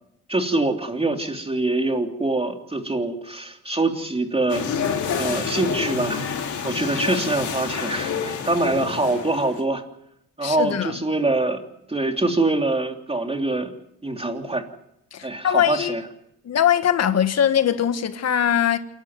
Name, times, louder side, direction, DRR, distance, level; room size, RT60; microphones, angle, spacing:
voice 1, 0.3-4.7 5.2-6.2 6.6-9.8 10.4-11.6 11.9-13.7 14.0-14.6 15.2-16.0, right 2 dB, 20° right, 3.1 m, -24 dB
sound 1, 4.5-9.6, left 6 dB, 75° left, 4.7 m, -28 dB
voice 2, 10.4-11.0 15.1-16.0 16.4-18.8, left 9 dB, 60° left, 1.8 m, -21 dB
28.0 x 12.0 x 9.5 m
cardioid pair, 90°, 30 cm